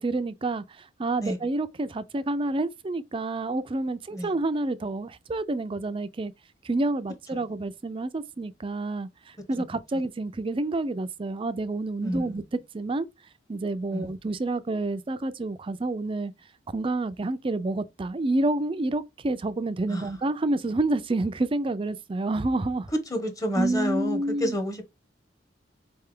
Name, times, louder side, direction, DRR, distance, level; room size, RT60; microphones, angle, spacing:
voice 1, 0.0-6.3 6.6-13.1 13.5-16.3 16.7-22.9 23.6-24.6, right 2 dB, 30° right, 0.4 m, -29 dB
voice 2, 23.1-24.8, equal, 20° left, 1.1 m, -29 dB
4.2 x 3.3 x 3.6 m
head